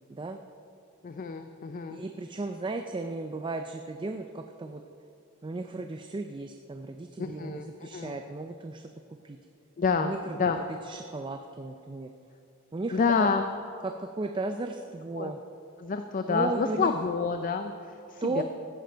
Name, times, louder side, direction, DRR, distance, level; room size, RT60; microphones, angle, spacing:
voice 1, 1.0-2.0 7.2-8.2 9.8-10.1 10.4-10.6 12.9-13.5 15.2-15.3 15.8-18.4, left 5 dB, 40° left, 7 dB, 0.4 m, -28 dB
voice 2, 1.9-4.8 5.4-8.9 9.2-9.4 10.0-12.1 12.7-13.3 13.8-15.4 16.3-16.9 18.2-18.4, right 2 dB, 20° right, 6 dB, 0.4 m, -35 dB
14.5 x 10.0 x 4.5 m, 2.6 s
head